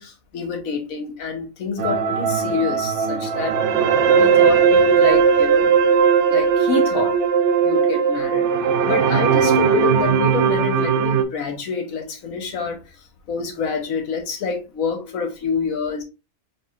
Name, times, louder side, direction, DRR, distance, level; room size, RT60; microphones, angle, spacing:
voice 1, 0.0-3.6 4.2-5.8 6.3-7.2 7.6-8.5 8.8-12.8 13.3-16.0, left 6 dB, 65° left, 1.3 m, -27 dB
sound 1, 1.8-11.2, right 6 dB, 60° right, 0.8 m, -18 dB
4.5 x 3.7 x 2.4 m
omnidirectional pair, 1.6 m